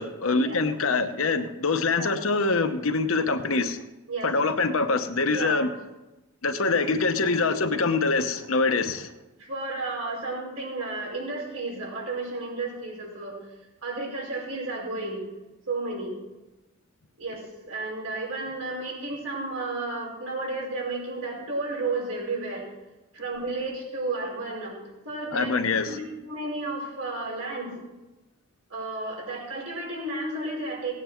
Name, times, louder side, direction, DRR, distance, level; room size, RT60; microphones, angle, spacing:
voice 1, 0.0-3.8 4.2-5.7 6.4-9.1 25.3-26.0, left 3 dB, 70° left, 8 dB, 0.9 m, -24 dB
voice 2, 5.3-5.7 9.4-13.4 13.8-15.2 15.7-16.1 17.2-22.7 23.1-25.5 25.8-26.0 26.3-27.8 28.7-30.9, right 2 dB, 85° right, -4 dB, 5.5 m, -32 dB
18.0 x 9.2 x 4.5 m, 1.1 s
head